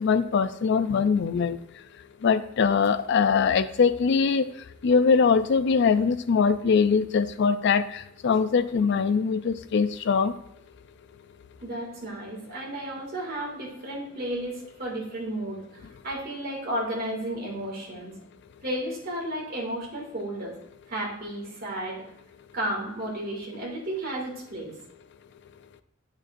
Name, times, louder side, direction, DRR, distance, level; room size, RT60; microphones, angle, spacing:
voice 1, 0.0-1.6 2.2-4.5 4.8-10.3, left 5 dB, 60° left, 13 dB, 0.4 m, -22 dB
voice 2, 11.6-18.1 18.6-20.6 20.9-22.0 22.5-24.7, right 1 dB, 50° right, -3 dB, 2.3 m, -33 dB
8.1 x 6.3 x 2.5 m, 0.78 s
head